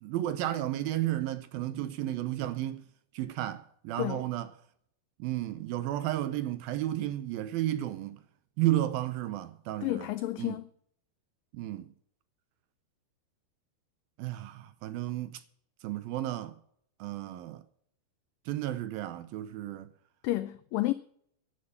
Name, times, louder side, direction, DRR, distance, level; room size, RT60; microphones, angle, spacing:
voice 1, 0.0-2.8 3.1-4.5 5.2-8.2 8.6-10.1 10.4-10.6 11.5-11.9 14.2-15.4 15.8-16.6 17.0-17.6 18.5-19.9, right 14 dB, 75° right, 2.3 m, -33 dB
voice 2, 9.8-10.7 20.2-20.9, left 16 dB, 90° left, 1.9 m, -31 dB
11.5 x 11.0 x 7.0 m
omnidirectional pair, 4.7 m